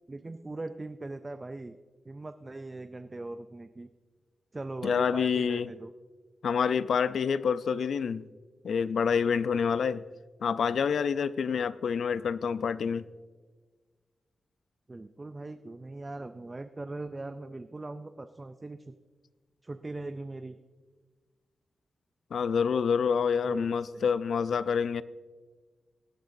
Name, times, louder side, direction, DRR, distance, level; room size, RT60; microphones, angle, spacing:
voice 1, 0.1-1.8 2.1-3.9 4.5-5.9 14.9-18.9 19.6-20.6 23.4-23.7, right 2 dB, 20° right, 9 dB, 0.3 m, -40 dB
voice 2, 4.8-5.7 6.4-8.2 8.6-10.0 10.4-13.0 22.3-25.0, left 6 dB, 75° left, 15 dB, 0.4 m, -27 dB
18.0 x 11.5 x 2.6 m, 1.4 s
wide cardioid pair, 165°, 0 cm